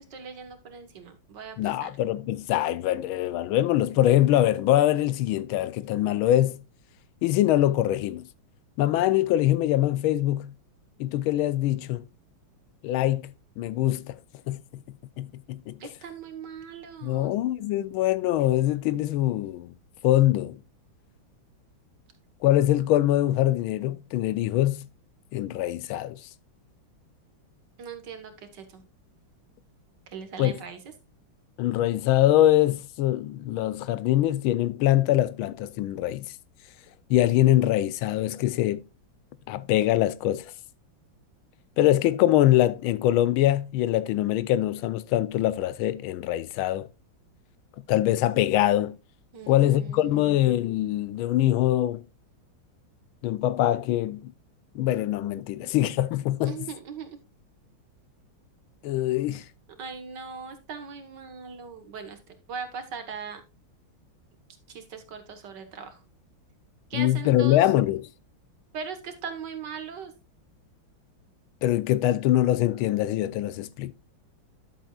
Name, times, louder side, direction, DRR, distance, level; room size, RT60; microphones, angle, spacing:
voice 1, 0.0-1.9 15.8-17.3 27.8-28.8 30.1-30.8 49.3-50.4 56.4-57.2 59.8-62.2 62.5-63.4 64.7-66.0 66.9-67.7 68.7-70.1, right 6 dB, 60° right, 1.9 m, -39 dB
voice 2, 1.6-6.6 7.2-8.2 8.8-10.5 11.0-12.0 12.8-14.2 14.5-14.8 15.2-15.8 17.0-19.7 20.0-20.6 22.4-24.9 25.3-26.2 30.4-30.5 31.6-36.3 37.1-38.8 39.5-40.5 41.8-46.9 47.9-48.9 49.5-52.0 53.2-54.3 54.7-56.6 58.8-59.4 66.9-68.1 71.6-73.9, left 13 dB, 85° left, 1.5 m, -23 dB
11.0 x 7.8 x 2.3 m
omnidirectional pair, 2.2 m